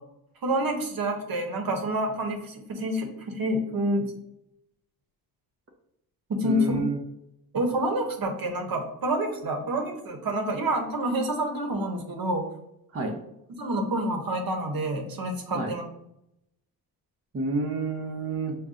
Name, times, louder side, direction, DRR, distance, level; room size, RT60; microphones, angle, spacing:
voice 1, 0.4-4.0 6.3-6.8 7.5-12.4 13.6-15.8, right 1 dB, 55° right, 3 dB, 1.1 m, -28 dB
voice 2, 6.4-7.0 12.9-13.2 15.5-15.7 17.3-18.6, right 3 dB, 30° right, 1 dB, 0.9 m, -29 dB
5.3 x 2.3 x 3.7 m, 0.81 s
supercardioid pair, 60°, 42 cm